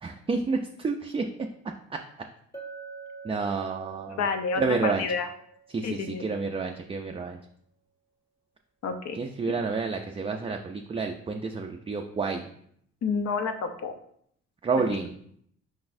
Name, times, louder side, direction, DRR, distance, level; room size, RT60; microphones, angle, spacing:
voice 1, 0.0-1.2 1.9-2.0 3.2-4.3 4.5-5.0 5.7-7.4 9.1-12.5 14.6-15.1, right 4 dB, 20° right, 3 dB, 0.4 m, -29 dB
Chink clink, 2.5-6.5, right 5 dB, 10° left, 0.8 m, -46 dB
voice 2, 4.2-5.3 5.8-6.2 8.8-9.2 13.0-13.9 14.8-15.0, left 5 dB, 60° left, 6 dB, 0.7 m, -29 dB
4.9 x 4.0 x 2.6 m, 0.68 s
cardioid pair, 90°, 30 cm